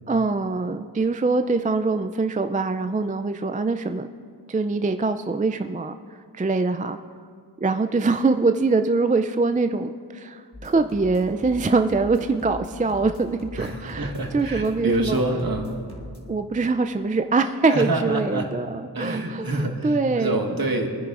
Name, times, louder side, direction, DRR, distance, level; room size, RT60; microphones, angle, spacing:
voice 1, 0.1-4.1 4.5-5.9 6.3-7.0 7.6-14.1 14.3-15.2 16.3-19.5 19.8-20.4, right 3 dB, 20° right, 8 dB, 0.3 m, -23 dB
sound 1, 10.5-16.2, left 1 dB, 15° left, 2.1 m, -40 dB
voice 2, 13.5-15.8 17.7-18.6 18.9-20.9, right 2 dB, 55° right, 2 dB, 1.5 m, -26 dB
24.5 x 10.0 x 2.5 m, 2.1 s
wide cardioid pair, 65°, 41 cm